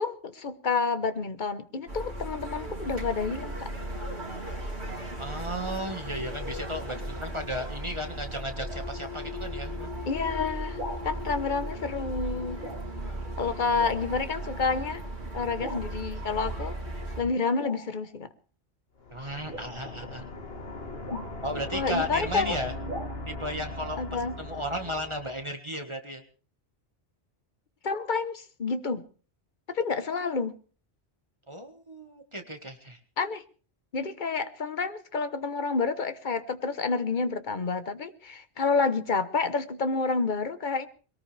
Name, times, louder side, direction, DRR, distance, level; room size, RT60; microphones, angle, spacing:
voice 1, 0.0-3.7 10.1-10.8 11.0-12.6 13.4-15.0 15.3-16.8 17.2-18.3 19.2-19.3 21.1-21.3 21.7-22.6 24.0-24.3 27.8-29.0 29.7-30.5 33.2-33.4 33.9-40.9, left 4 dB, 50° left, 1.2 m, -29 dB
sound 1, 1.9-17.2, right 1 dB, 85° right, 3.5 m, -36 dB
voice 2, 5.2-9.9 19.1-20.3 21.4-22.7 23.3-24.0 24.4-26.2 31.5-33.0, equal, 25° right, 1.7 m, -34 dB
sound 2, 10.8-11.1 12.0-12.3 12.6-12.9 13.2-13.3 13.8-14.0 14.7-14.9 15.6-15.9 16.4-16.7 17.6-18.1 19.4-22.0 22.8-23.0, right 1 dB, 55° right, 6.6 m, -41 dB
sound 3, 19.0-25.5, left 2 dB, 70° left, 2.0 m, -39 dB
22.0 x 18.5 x 3.4 m
omnidirectional pair, 1.1 m